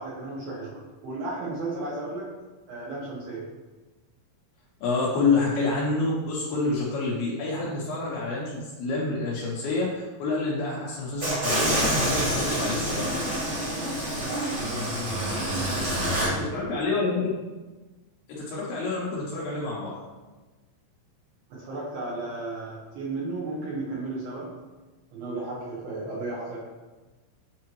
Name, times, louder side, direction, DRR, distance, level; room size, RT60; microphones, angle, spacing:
voice 1, 0.0-2.3 2.7-3.5 14.1-16.8 21.5-24.5 25.1-26.6, right 2 dB, 85° right, -7 dB, 2.1 m, -34 dB
voice 2, 4.8-13.2 16.4-17.3 18.3-20.0, left 3 dB, 85° left, -5 dB, 2.2 m, -28 dB
sound 1, 11.2-16.3, right 1 dB, 40° right, 1.9 m, -27 dB
8.4 x 4.6 x 3.0 m, 1.2 s
omnidirectional pair, 5.8 m